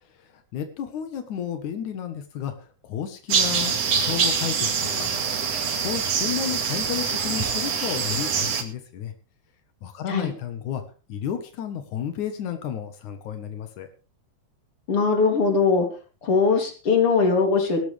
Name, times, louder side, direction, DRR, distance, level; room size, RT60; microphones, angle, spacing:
voice 1, 0.2-2.5 2.9-5.1 5.8-9.1 9.8-10.8 11.1-13.9, left 9 dB, 90° left, 7 dB, 3.0 m, -32 dB
sound 1, 3.3-8.6, right 6 dB, 60° right, 3.1 m, -25 dB
voice 2, 14.9-15.9 16.2-17.8, left 4 dB, 50° left, 4 dB, 4.2 m, -20 dB
18.0 x 13.5 x 3.5 m, 0.35 s
omnidirectional pair, 3.3 m